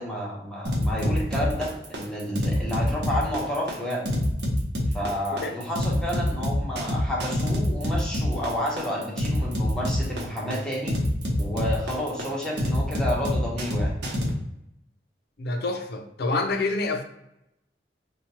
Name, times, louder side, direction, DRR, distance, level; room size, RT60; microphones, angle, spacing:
voice 1, 0.0-4.1 4.9-11.0 11.4-13.9, equal, 5° left, -4 dB, 0.9 m, -30 dB
sound 1, 0.7-14.3, left 1 dB, 70° right, 0.8 m, -26 dB
voice 2, 15.4-17.0, left 3 dB, 60° left, 5 dB, 0.5 m, -27 dB
4.4 x 2.3 x 2.8 m, 0.84 s
head